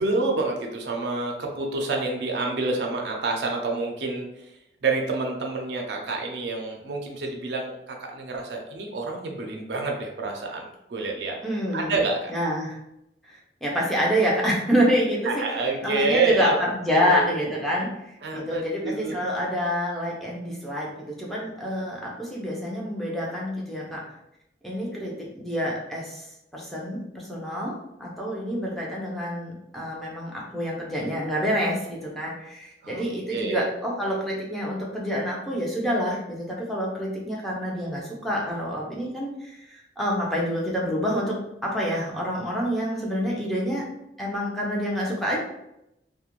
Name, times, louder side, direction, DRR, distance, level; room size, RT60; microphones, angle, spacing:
voice 1, 0.0-4.3 4.8-11.4 11.7-12.3 15.2-16.6 16.9-17.4 18.2-19.1 32.8-33.0 33.3-33.7, right 3 dB, 70° right, 1 dB, 0.4 m, -28 dB
voice 2, 11.4-11.9 12.3-12.8 13.3-15.4 15.8-24.0 24.6-26.3 26.5-43.9 44.2-45.4, equal, ahead, -5 dB, 0.5 m, -27 dB
2.4 x 2.1 x 2.9 m, 0.84 s
head